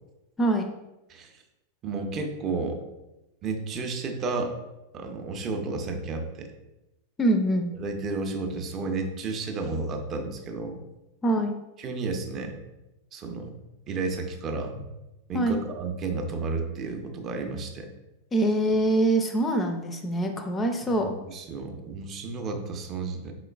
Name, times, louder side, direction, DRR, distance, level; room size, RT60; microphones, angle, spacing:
voice 1, 0.4-0.7 7.2-7.7 11.2-11.5 15.3-15.6 18.3-21.1, right 1 dB, 20° left, 5 dB, 0.4 m, -24 dB
voice 2, 1.1-1.4 1.8-2.8 3.4-4.5 4.9-6.5 7.8-10.8 11.8-12.6 13.1-13.5 13.9-14.9 15.3-17.9 20.8-23.4, right 3 dB, 30° right, 5 dB, 0.6 m, -32 dB
4.8 x 3.7 x 2.3 m, 0.98 s
figure-of-eight pair, 90°, 0 cm